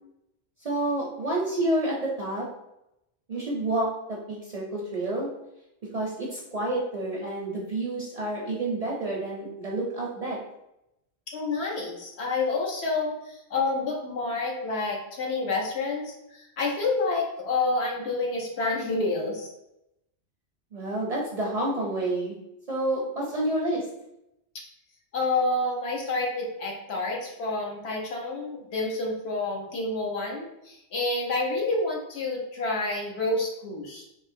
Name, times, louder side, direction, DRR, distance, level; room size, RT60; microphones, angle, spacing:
voice 1, 0.6-2.5 3.3-5.3 5.9-10.4 20.7-22.4 22.7-23.8, right 1 dB, 50° right, -4 dB, 0.5 m, -29 dB
voice 2, 11.3-19.5 25.1-34.0, left 3 dB, 75° left, -1 dB, 1.0 m, -28 dB
3.7 x 2.0 x 2.5 m, 0.86 s
omnidirectional pair, 1.1 m